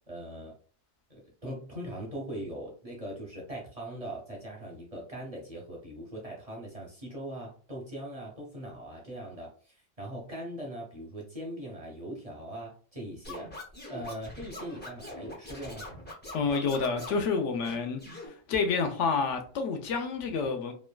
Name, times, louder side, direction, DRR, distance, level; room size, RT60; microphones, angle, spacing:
voice 1, 0.1-0.5 1.1-13.5 13.9-15.9, right 1 dB, 40° right, 0.5 m, -41 dB
Scratching (performance technique), 13.2-17.2 17.6-18.3, left 1 dB, 15° left, 0.4 m, -43 dB
voice 2, 16.3-18.0 18.5-20.7, left 5 dB, 70° left, 0.9 m, -28 dB
3.0 x 2.2 x 2.2 m
omnidirectional pair, 1.3 m